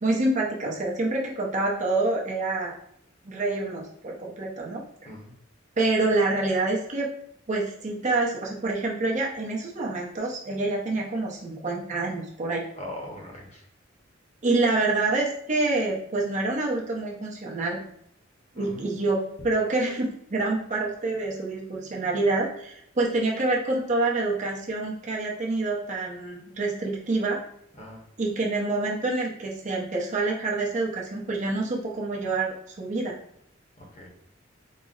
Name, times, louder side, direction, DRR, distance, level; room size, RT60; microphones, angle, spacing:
voice 1, 0.0-2.7 3.2-5.1 5.8-7.1 7.5-12.6 14.4-17.8 18.6-27.4 28.2-33.2, right 2 dB, 40° right, -2 dB, 0.7 m, -27 dB
voice 2, 12.7-13.6 18.5-18.8 27.8-28.0 33.8-34.1, left 1 dB, 35° left, -1 dB, 0.8 m, -40 dB
3.9 x 2.0 x 3.8 m, 0.70 s
head